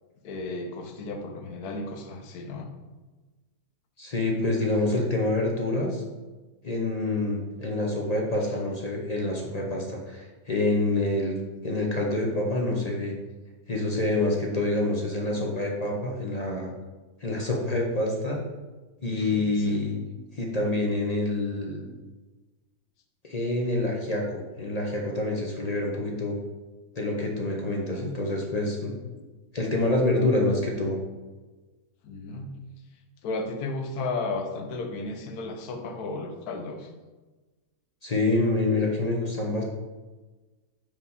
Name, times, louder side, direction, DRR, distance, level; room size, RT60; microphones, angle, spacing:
voice 1, 0.2-2.7 7.7-7.8 19.1-19.9 27.8-28.1 32.0-32.5 33.2-36.9, left 3 dB, 85° left, 5 dB, 1.3 m, -34 dB
voice 2, 4.0-6.0 6.6-11.4 11.6-13.1 13.7-16.7 17.2-18.4 19.0-20.0 20.3-21.8 23.2-26.4 27.0-29.2 29.5-31.0 38.0-39.6, left 2 dB, 35° left, -1 dB, 0.7 m, -27 dB
5.3 x 4.9 x 4.0 m, 1.2 s
omnidirectional pair, 1.6 m